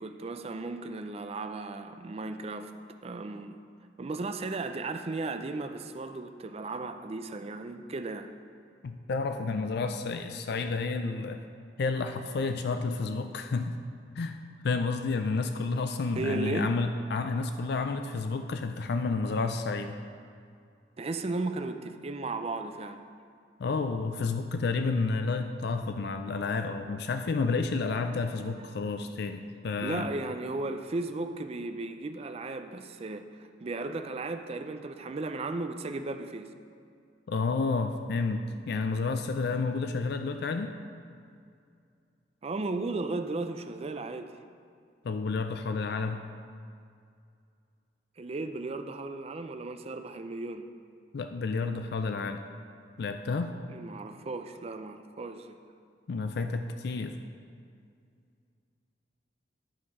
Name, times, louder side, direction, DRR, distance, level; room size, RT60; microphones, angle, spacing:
voice 1, 0.0-2.7 3.0-3.6 4.0-8.3 16.2-16.8 21.0-23.0 28.6-28.7 29.8-36.5 42.4-44.3 48.2-50.7 53.7-55.6, right 3 dB, 35° right, 8 dB, 0.4 m, -35 dB
voice 2, 8.8-11.4 11.8-13.8 14.2-14.4 14.6-20.0 23.6-30.1 37.3-40.8 45.0-46.2 51.1-52.4 53.0-53.5 56.1-57.2, left 4 dB, 60° left, 7 dB, 0.4 m, -30 dB
11.0 x 5.6 x 4.8 m, 2.4 s
head